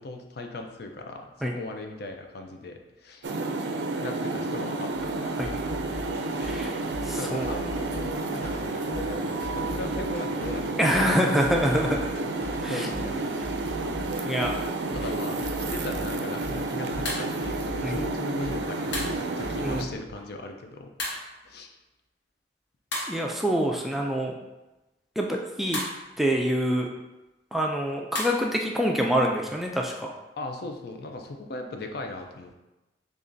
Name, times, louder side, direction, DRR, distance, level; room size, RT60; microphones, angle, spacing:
voice 1, 0.0-3.3 4.0-5.4 7.1-11.3 12.6-13.4 14.9-20.9 21.4-21.8 30.4-32.5, left 2 dB, 60° left, 4 dB, 0.5 m, -38 dB
sound 1, 3.2-19.8, right 2 dB, 70° right, 0.4 m, -31 dB
sound 2, 4.9-20.3, equal, 35° left, 1.0 m, -41 dB
voice 2, 6.4-6.7 7.0-7.5 10.8-12.2 12.6-12.9 14.3-14.5 17.8-18.0 19.6-19.9 23.1-24.4 25.2-25.8 26.2-26.9 27.5-30.1, equal, ahead, 0 dB, 0.3 m, -26 dB
sound 3, 15.0-15.2 17.1-17.3 18.9-19.2 21.0-21.4 22.9-23.4 25.7-26.0 28.1-28.5, left 1 dB, 85° left, 1.0 m, -33 dB
6.6 x 2.4 x 2.6 m, 1.0 s
head